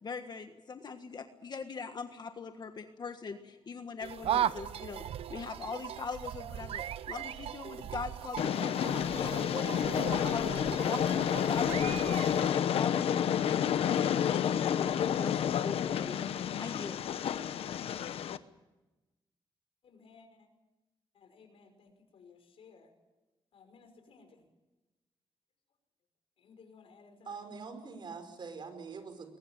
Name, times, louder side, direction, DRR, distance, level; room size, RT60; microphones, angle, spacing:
voice 1, 0.0-5.0 5.3-16.2 16.6-17.0, left 5 dB, 45° left, 7 dB, 1.5 m, -41 dB
sound 1, 4.0-12.5, right 10 dB, 90° right, 0.8 m, -37 dB
Train, 8.4-18.4, left 9 dB, 90° left, 1.0 m, -30 dB
voice 2, 19.8-20.5 21.1-22.9 23.5-24.5 26.4-27.4, left 5 dB, 75° left, 6 dB, 5.7 m, -58 dB
voice 3, 27.2-29.4, right 5 dB, 55° right, 8 dB, 5.1 m, -44 dB
22.0 x 20.0 x 9.1 m, 1.0 s
cardioid pair, 105°, 10 cm